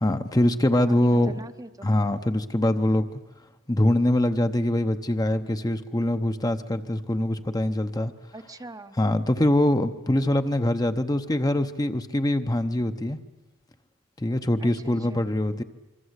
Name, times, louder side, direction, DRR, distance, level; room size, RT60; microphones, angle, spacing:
voice 1, 0.0-1.3 1.8-3.1 3.7-8.1 9.0-13.2 14.2-15.6, left 1 dB, 20° left, 8 dB, 0.8 m, -23 dB
voice 2, 0.8-1.9 8.3-9.0 14.6-15.2, right 2 dB, 20° right, 8 dB, 0.8 m, -43 dB
26.0 x 24.0 x 8.1 m, 1.1 s
head